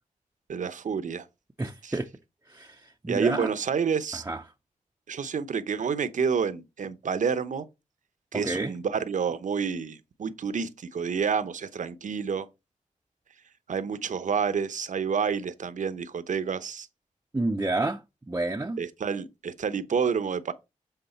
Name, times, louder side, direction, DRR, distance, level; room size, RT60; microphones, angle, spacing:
voice 1, 0.5-1.3 1.8-2.0 3.1-4.2 5.1-7.6 8.3-12.5 13.7-16.9 18.8-20.5, right 6 dB, 65° right, 0.8 m, -29 dB
voice 2, 1.6-2.1 2.5-3.5 4.3-4.4 8.3-8.7 17.3-18.0 18.3-18.8, right 2 dB, 20° right, 0.6 m, -29 dB
8.0 x 3.7 x 4.3 m
cardioid pair, 80°, 14 cm